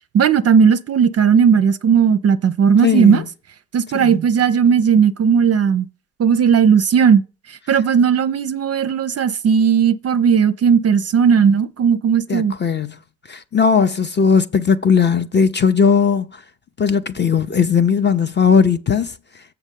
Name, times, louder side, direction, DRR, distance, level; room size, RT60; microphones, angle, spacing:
voice 1, 0.1-3.2 3.7-5.9 6.2-7.2 7.5-12.5, right 7 dB, 35° right, 0.5 m, -15 dB
voice 2, 2.8-3.3 3.9-4.1 12.3-13.0 13.3-16.4 16.8-19.4, left 6 dB, 25° left, 0.5 m, -17 dB
7.2 x 5.7 x 5.3 m
hypercardioid pair, 50°, 44 cm